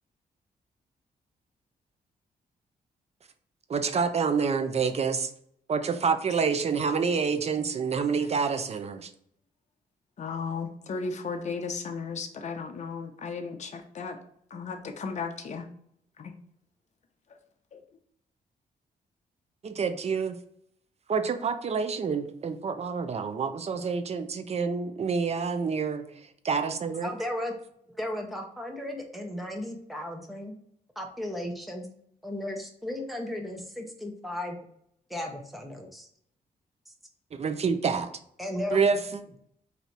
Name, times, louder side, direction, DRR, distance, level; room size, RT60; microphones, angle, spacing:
voice 1, 3.7-5.3 5.7-9.1 19.6-20.4 21.1-26.0 26.4-27.1 37.3-38.1 38.7-39.2, right 5 dB, 45° right, 8 dB, 0.6 m, -27 dB
voice 2, 10.2-14.2 14.5-15.7 16.2-16.3 17.7-17.8, left 5 dB, 50° left, 4 dB, 0.7 m, -35 dB
voice 3, 27.0-27.5 28.0-30.5 31.0-31.9 32.2-34.6 35.1-36.1 38.4-38.9, left 1 dB, ahead, 2 dB, 0.9 m, -35 dB
4.1 x 2.8 x 4.6 m, 0.67 s
cardioid pair, 95°, 15 cm